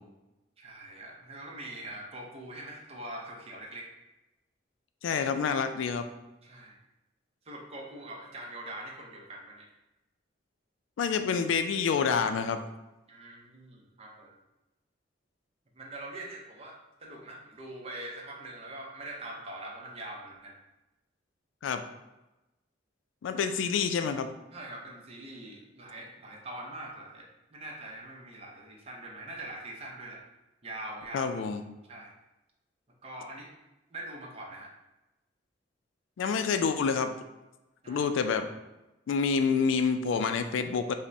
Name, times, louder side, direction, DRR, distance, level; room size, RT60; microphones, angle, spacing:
voice 1, 0.6-3.9 6.4-6.7 7.5-9.7 13.1-14.4 15.7-20.6 24.5-30.3 30.6-31.3 31.9-32.1 33.0-33.5 33.9-34.7 37.8-38.1, right 1 dB, 35° right, -1 dB, 0.6 m, -43 dB
voice 2, 5.0-6.1 11.0-12.6 21.6-21.8 23.2-24.3 31.1-31.6 36.2-37.1 37.9-38.5 39.1-40.9, left 5 dB, 85° left, 8 dB, 0.3 m, -28 dB
5.1 x 2.1 x 2.6 m, 0.99 s
head